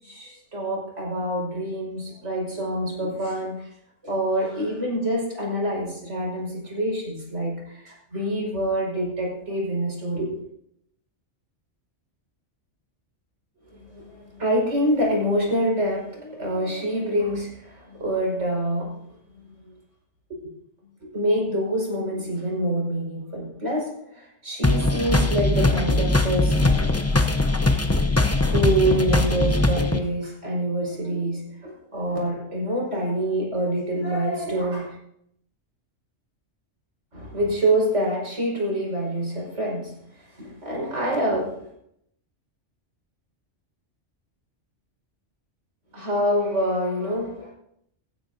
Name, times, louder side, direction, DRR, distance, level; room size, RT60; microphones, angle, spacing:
voice 1, 0.0-3.7 4.0-10.4 13.7-19.0 19.3-19.8 20.3-20.5 21.0-27.0 28.4-35.0 37.1-41.7 45.9-47.5, right 1 dB, 85° right, -3 dB, 5.8 m, -26 dB
sound 1, 24.6-30.0, left 2 dB, 15° left, 0.7 m, -21 dB
17.5 x 15.0 x 2.8 m, 0.74 s
omnidirectional pair, 1.2 m